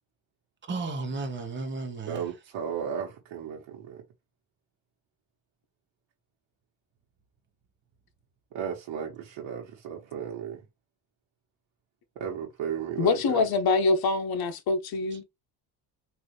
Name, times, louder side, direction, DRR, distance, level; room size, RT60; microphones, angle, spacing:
voice 1, 0.7-2.2 15.1-15.2, right 3 dB, 25° right, 0.9 m, -34 dB
voice 2, 2.1-4.0 8.5-10.6 12.2-13.5, right 8 dB, 80° right, 1.3 m, -34 dB
voice 3, 13.0-15.2, left 3 dB, 50° left, 0.9 m, -25 dB
3.9 x 2.7 x 3.2 m
cardioid pair, 115°, 46 cm